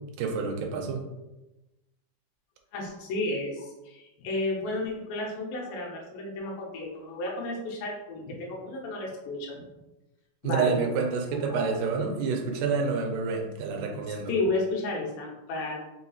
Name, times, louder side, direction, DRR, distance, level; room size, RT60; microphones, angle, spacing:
voice 1, 0.2-1.0 10.4-14.3, right 5 dB, 80° right, 2 dB, 2.0 m, -28 dB
voice 2, 2.7-9.7 10.4-10.8 11.5-11.7 14.3-15.8, left 2 dB, 80° left, -2 dB, 2.6 m, -32 dB
5.5 x 2.8 x 2.3 m, 1.0 s
omnidirectional pair, 4.0 m